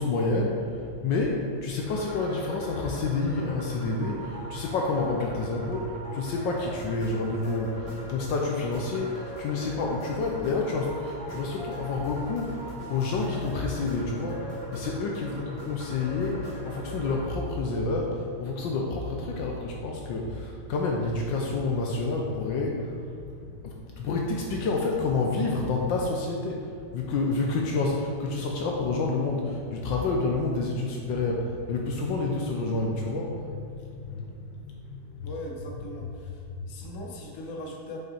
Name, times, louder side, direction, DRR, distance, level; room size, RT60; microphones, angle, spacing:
voice 1, 0.0-35.3 35.7-36.1 36.6-36.7, left 3 dB, 75° left, 0 dB, 1.3 m, -29 dB
sound 1, 1.8-17.2, equal, 20° left, 1.6 m, -41 dB
voice 2, 15.2-15.7 35.2-36.4 36.7-38.0, left 1 dB, 50° left, 0 dB, 1.1 m, -40 dB
6.7 x 5.4 x 4.2 m, 2.4 s
omnidirectional pair, 2.2 m